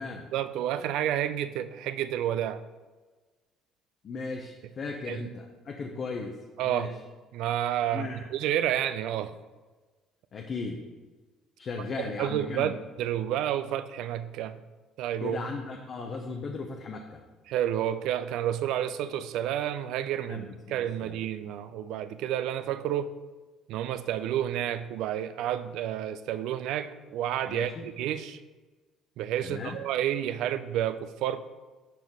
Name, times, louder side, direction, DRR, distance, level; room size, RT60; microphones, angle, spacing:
voice 1, 0.3-2.6 5.1-5.2 6.6-6.9 7.3-9.3 12.2-14.6 15.0-15.4 17.5-23.1 23.7-28.4 29.2-31.5, right 11 dB, 75° right, 12 dB, 0.4 m, -30 dB
voice 2, 4.0-6.4 6.6-6.9 7.9-8.2 10.3-10.8 11.6-12.7 15.2-17.2 20.3-21.2 27.5-27.9 29.4-29.8, left 4 dB, 50° left, 2 dB, 0.8 m, -37 dB
5.9 x 5.3 x 4.6 m, 1.3 s
supercardioid pair, 70°, 0 cm